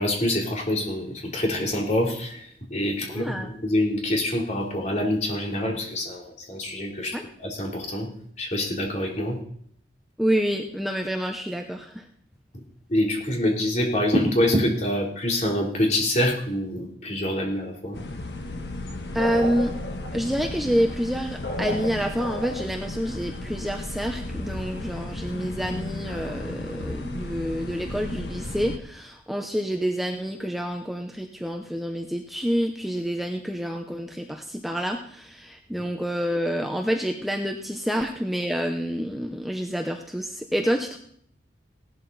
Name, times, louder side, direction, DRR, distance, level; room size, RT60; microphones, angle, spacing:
voice 1, 0.0-7.2 7.4-8.1 8.4-9.4 12.9-18.0 35.7-35.8, left 1 dB, 40° left, -1 dB, 3.6 m, -26 dB
voice 2, 3.1-3.5 7.1-7.2 10.2-12.1 19.1-19.7 20.1-41.0, equal, ahead, 3 dB, 0.8 m, -28 dB
sound 1, 17.9-28.8, left 2 dB, 70° left, 1.5 m, -34 dB
sound 2, 19.2-22.9, left 1 dB, 85° left, 3.7 m, -34 dB
17.5 x 12.0 x 4.1 m, 0.63 s
head